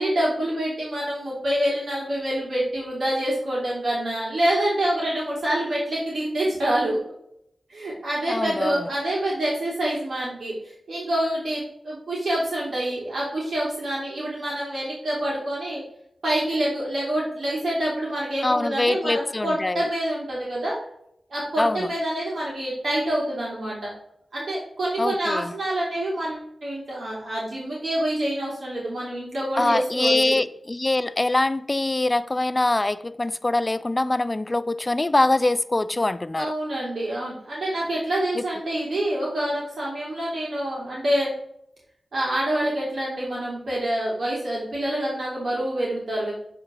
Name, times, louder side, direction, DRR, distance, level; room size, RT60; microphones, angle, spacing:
voice 1, 0.0-7.0 7.7-15.8 16.2-20.8 21.3-23.9 24.3-30.4 36.4-41.3 42.1-46.3, right 1 dB, 80° right, 3.2 m, -26 dB
voice 2, 8.3-8.9 18.4-19.8 21.6-21.9 25.0-25.5 29.6-36.5 38.4-38.5, left 2 dB, 25° left, 0.3 m, -23 dB
9.1 x 4.5 x 3.8 m
wide cardioid pair, 85°, 0 cm